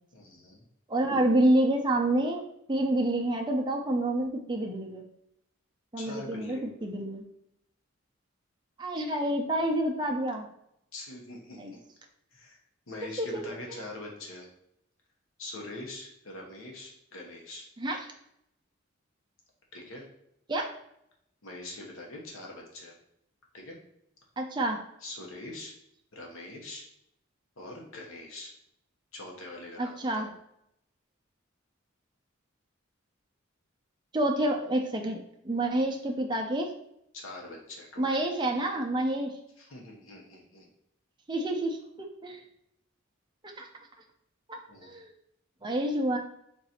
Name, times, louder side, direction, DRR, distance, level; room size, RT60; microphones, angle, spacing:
voice 1, 0.1-0.6 6.0-6.6 10.9-11.8 12.3-12.6 12.9-14.5 15.4-17.7 19.7-20.1 21.4-22.9 23.5-23.8 25.0-25.7 26.1-26.9 27.6-28.5 29.1-30.3 37.1-38.2 39.6-40.7 44.7-44.9, left 2 dB, 90° left, -1 dB, 1.0 m, -43 dB
voice 2, 0.9-2.4 2.7-5.0 5.9-7.3 8.8-10.5 11.6-11.7 13.2-13.4 17.8-18.0 20.5-20.7 24.4-24.8 29.8-30.3 34.1-35.2 35.4-36.7 38.0-39.3 41.3-42.4 43.6-43.7 44.5-45.1 45.6-46.2, right 1 dB, 20° right, 1 dB, 0.5 m, -28 dB
3.9 x 2.6 x 4.2 m, 0.76 s
head